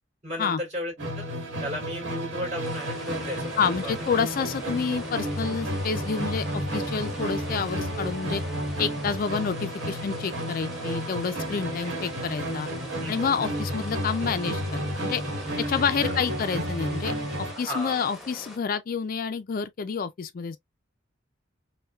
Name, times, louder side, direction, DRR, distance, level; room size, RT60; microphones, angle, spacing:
voice 1, 0.2-3.9 11.8-12.1 13.0-13.3 15.6-16.2 17.6-18.1, left 1 dB, 35° right, 2.7 m, -35 dB
Musical instrument, 1.0-17.7, equal, 60° right, 1.5 m, -32 dB
sound 1, 2.6-18.6, left 1 dB, ahead, 0.9 m, -43 dB
voice 2, 3.6-8.4 8.8-12.7 13.1-15.2 15.6-20.6, left 6 dB, 45° left, 0.3 m, -29 dB
5.4 x 2.2 x 2.3 m
head